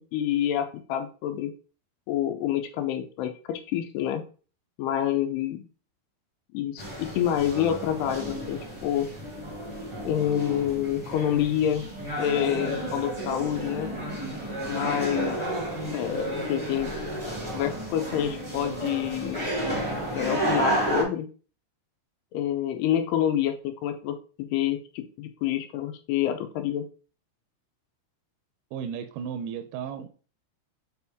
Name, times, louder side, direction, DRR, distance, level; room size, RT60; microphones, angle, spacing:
voice 1, 0.1-1.5 2.1-4.2 4.8-5.6 6.5-9.1 10.0-11.9 12.2-13.9 14.7-15.4 15.9-16.9 17.5-19.5 20.1-21.3 22.3-26.9, left 10 dB, 80° left, 8 dB, 2.7 m, -27 dB
sound 1, 6.8-21.0, right 1 dB, 25° right, 0.5 m, -32 dB
voice 2, 28.7-30.1, right 7 dB, 85° right, 7 dB, 2.5 m, -34 dB
6.9 x 4.4 x 3.5 m, 0.38 s
omnidirectional pair, 4.8 m